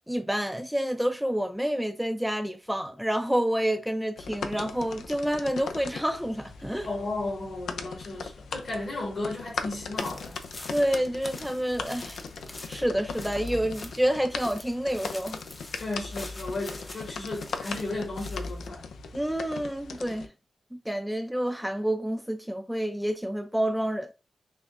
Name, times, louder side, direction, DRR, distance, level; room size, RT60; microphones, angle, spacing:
voice 1, 0.1-6.9 10.7-12.3 12.7-15.4 19.1-20.3 20.7-24.1, equal, 5° right, 0.4 m, -28 dB
sound 1, 4.2-20.3, left 4 dB, 85° left, 0.4 m, -38 dB
voice 2, 6.9-10.4 15.8-18.9, left 2 dB, 60° left, 2.2 m, -34 dB
sound 2, 10.0-18.7, left 2 dB, 35° left, 0.8 m, -46 dB
6.1 x 2.1 x 2.4 m
cardioid pair, 65°, 0 cm